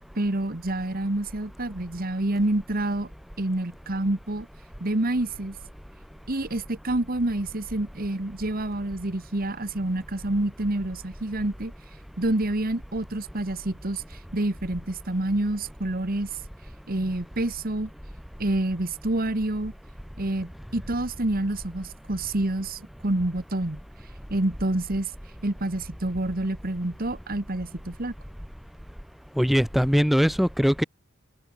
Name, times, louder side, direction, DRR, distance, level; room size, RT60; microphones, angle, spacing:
voice 1, 0.1-3.1 3.4-4.5 4.8-5.5 6.3-11.7 12.2-16.3 16.9-17.9 18.4-19.7 20.2-23.8 24.3-25.1 25.4-28.1, right 1 dB, 45° right, 1.5 m, -28 dB
voice 2, 29.4-30.8, equal, ahead, 0.6 m, -21 dB
head